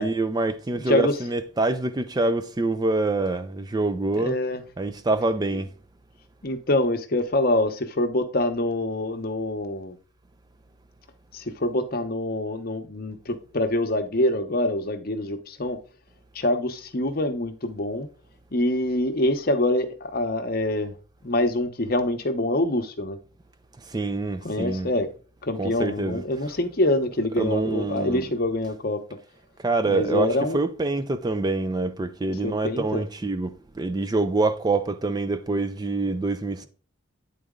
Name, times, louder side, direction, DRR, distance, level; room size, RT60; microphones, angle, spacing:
voice 1, 0.0-4.4 4.8-5.7 23.9-24.9 25.6-26.2 27.4-28.3 29.6-36.7, right 2 dB, 20° right, 0.3 m, -26 dB
voice 2, 0.7-1.1 4.1-4.6 6.4-10.0 11.3-15.8 16.3-18.1 18.5-20.9 21.2-23.2 24.4-25.1 25.4-29.0 29.9-30.6 32.4-33.0, left 1 dB, 45° left, 0.8 m, -25 dB
9.2 x 4.0 x 3.7 m
head